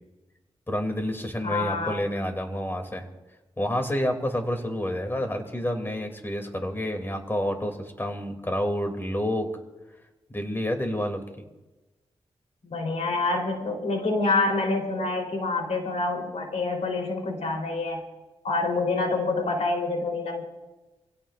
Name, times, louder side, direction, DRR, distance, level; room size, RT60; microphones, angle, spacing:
voice 1, 0.7-3.1 3.6-9.5 10.3-11.3, equal, 20° left, 4 dB, 2.8 m, -29 dB
voice 2, 1.4-2.0 12.6-18.0 18.4-20.4, left 3 dB, 80° left, 2 dB, 3.8 m, -27 dB
26.0 x 16.5 x 2.6 m, 1.1 s
cardioid pair, 80°, 11 cm